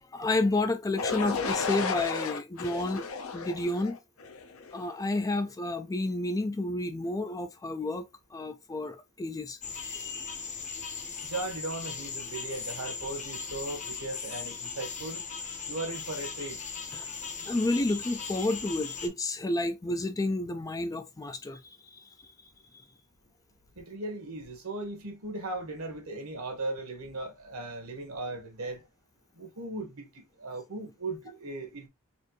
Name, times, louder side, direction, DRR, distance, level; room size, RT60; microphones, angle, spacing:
voice 1, 0.0-4.0 4.7-8.0 8.3-10.3 16.9-17.1 17.4-22.3, left 2 dB, 15° left, 0.3 m, -31 dB
sound 1, 1.0-4.9, left 5 dB, 65° left, 0.7 m, -33 dB
sound 2, 9.6-19.1, left 5 dB, 35° left, 0.8 m, -38 dB
voice 2, 11.2-15.2 15.7-16.6 23.7-28.8 29.3-31.9, right 2 dB, 70° right, 1.3 m, -37 dB
4.2 x 2.6 x 3.0 m
head